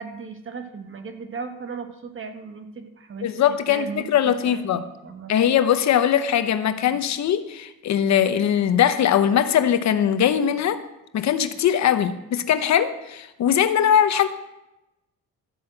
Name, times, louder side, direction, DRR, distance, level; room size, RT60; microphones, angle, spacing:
voice 1, 0.0-5.3 6.9-7.0, right 5 dB, 45° right, 7 dB, 1.6 m, -37 dB
voice 2, 3.2-4.8 5.3-10.8 11.1-14.3, left 9 dB, 65° left, 10 dB, 0.9 m, -21 dB
13.0 x 5.8 x 7.7 m, 0.93 s
cardioid pair, 90°, 30 cm